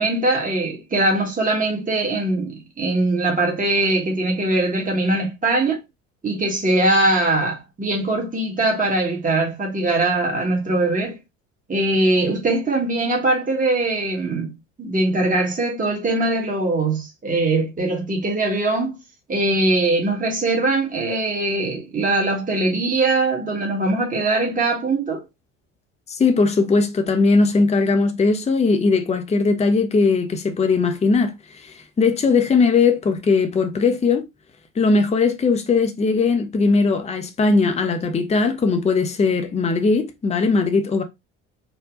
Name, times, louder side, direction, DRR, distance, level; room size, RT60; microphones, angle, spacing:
voice 1, 0.0-5.8 6.2-11.2 11.7-19.0 19.3-25.2, right 2 dB, 20° right, 1.8 m, -21 dB
voice 2, 26.1-34.2 34.8-41.0, left 4 dB, 15° left, 0.8 m, -19 dB
4.4 x 2.2 x 3.7 m
figure-of-eight pair, 65°, 39 cm